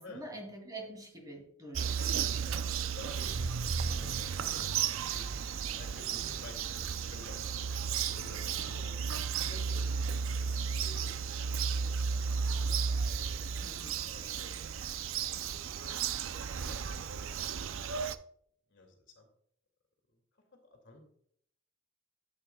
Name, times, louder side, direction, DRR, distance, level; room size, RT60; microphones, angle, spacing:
voice 1, 0.0-2.2 4.4-4.7 8.6-8.8 13.6-14.0, right 1 dB, 20° right, 0 dB, 2.7 m, -46 dB
Bird vocalization bird call bird song, 1.7-18.2, right 6 dB, 70° right, 0.5 m, -34 dB
voice 2, 2.0-9.0 9.4-11.6 12.3-13.4 14.0-15.3 15.8-16.0 16.5-17.4 18.7-19.3 20.7-21.0, left 2 dB, 60° left, 2 dB, 2.4 m, -53 dB
13.0 x 8.6 x 2.3 m, 0.67 s
head